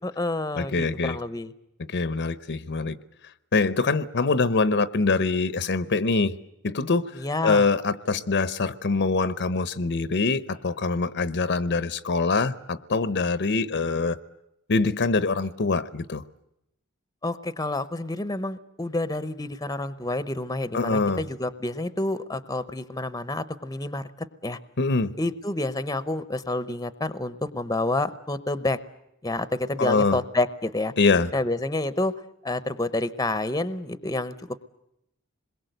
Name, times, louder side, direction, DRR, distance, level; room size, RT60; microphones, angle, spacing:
voice 1, 0.0-1.5 7.1-7.7 17.2-24.6 25.2-28.8 29.2-30.9 31.3-32.1 32.4-34.7, left 2 dB, 15° left, 14 dB, 0.9 m, -29 dB
voice 2, 0.6-1.2 1.9-3.0 3.5-6.3 6.6-7.1 7.4-14.2 14.7-16.2 20.7-21.2 24.8-25.1 29.8-30.2 31.0-31.3, left 3 dB, 55° left, 15 dB, 0.9 m, -24 dB
27.0 x 22.0 x 8.0 m, 0.84 s
head